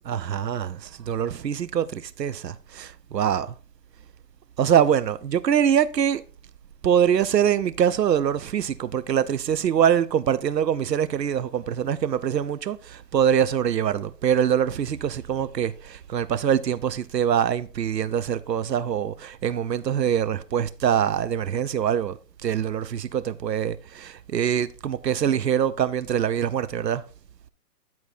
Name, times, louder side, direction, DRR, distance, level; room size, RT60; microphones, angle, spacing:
voice 1, 0.1-3.5 4.6-6.2 6.8-27.0, right 9 dB, 90° right, 0.8 m, -24 dB
10.5 x 4.3 x 4.1 m
hypercardioid pair, 145°, 48 cm